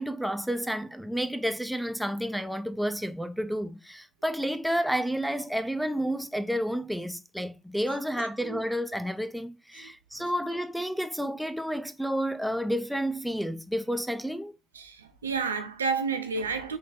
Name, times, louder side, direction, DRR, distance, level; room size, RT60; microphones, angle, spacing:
voice 1, 0.0-14.5, equal, ahead, 0.6 m, -30 dB
voice 2, 7.9-8.6 14.7-16.8, right 5 dB, 85° right, 0.3 m, -31 dB
3.8 x 3.5 x 2.5 m
figure-of-eight pair, 40°, 0 cm